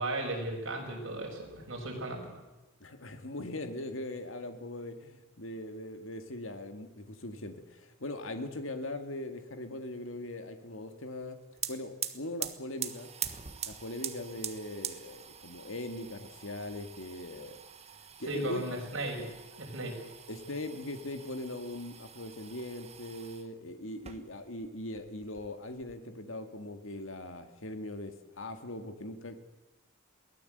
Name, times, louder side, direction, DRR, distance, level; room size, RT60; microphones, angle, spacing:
voice 1, 0.0-2.3 18.3-19.3 19.6-20.0, right 1 dB, 65° right, 1 dB, 6.4 m, -36 dB
voice 2, 2.8-11.4 11.7-13.1 13.7-17.6 18.2-18.6 19.8-19.9 20.3-29.4, left 1 dB, 70° left, 7 dB, 2.1 m, -40 dB
sound 1, 11.2-11.3 11.5-23.5 23.9-24.7 25.0-26.0, right 9 dB, 30° right, 1.4 m, -43 dB
23.0 x 17.0 x 8.0 m, 1.0 s
head